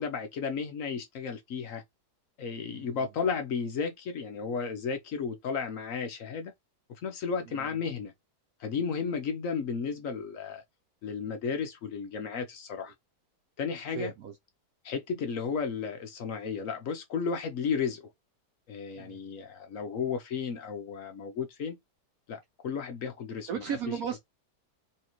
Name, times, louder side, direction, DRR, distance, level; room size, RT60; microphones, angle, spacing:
voice 1, 0.0-1.8 2.4-6.5 7.0-8.1 8.6-10.6 11.0-12.9 13.6-14.1 14.8-18.1 18.7-21.8 22.3-23.6, left 6 dB, 60° left, 1.0 m, -33 dB
voice 2, 2.6-3.0 7.5-7.8 13.9-14.3 18.9-19.2 23.5-24.2, right 8 dB, 65° right, 1.0 m, -36 dB
4.2 x 2.8 x 2.9 m
omnidirectional pair, 1.8 m